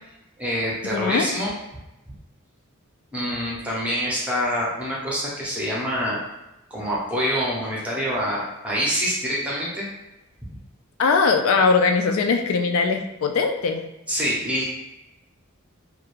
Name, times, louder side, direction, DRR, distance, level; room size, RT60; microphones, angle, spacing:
voice 1, 0.4-1.5 3.1-6.2 6.7-9.9 14.1-14.6, equal, 5° right, -6 dB, 0.6 m, -26 dB
voice 2, 0.9-1.3 11.0-13.8, left 4 dB, 70° left, 5 dB, 0.3 m, -20 dB
2.3 x 2.1 x 3.0 m, 0.96 s
head